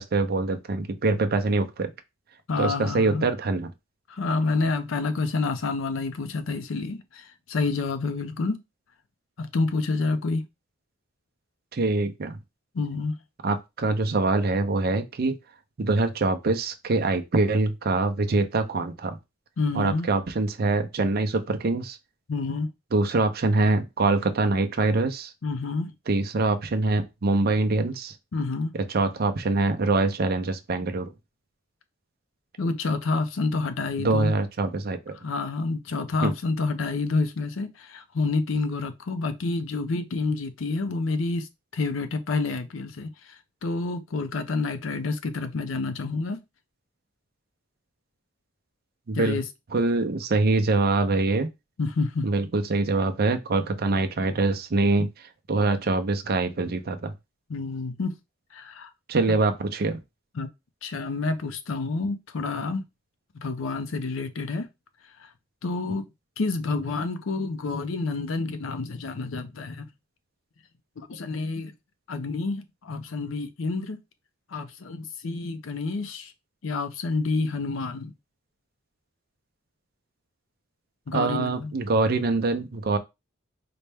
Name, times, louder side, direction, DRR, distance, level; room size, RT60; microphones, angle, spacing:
voice 1, 0.0-1.9 2.6-3.7 11.7-12.4 13.4-15.4 15.8-19.2 19.7-22.0 22.9-25.3 26.1-28.1 28.7-31.1 34.0-35.2 36.2-36.3 49.1-49.4 49.7-51.5 52.2-55.1 55.5-57.1 59.1-60.0 81.1-83.0, right 3 dB, 50° right, 0.5 m, -24 dB
voice 2, 2.5-3.3 4.1-8.6 9.4-10.5 12.7-13.2 19.6-20.1 22.3-22.7 25.4-25.9 28.3-28.7 32.6-34.3 35.2-46.4 49.1-49.4 51.8-52.3 55.0-55.1 57.5-58.1 58.5-58.9 60.4-60.5 60.8-62.8 63.4-64.7 65.2-65.3 65.6-66.1 66.4-69.9 71.0-71.7 72.1-74.0 74.5-76.3 76.6-78.1 81.1-81.7, left 3 dB, 80° left, 0.6 m, -28 dB
4.2 x 2.2 x 3.4 m
head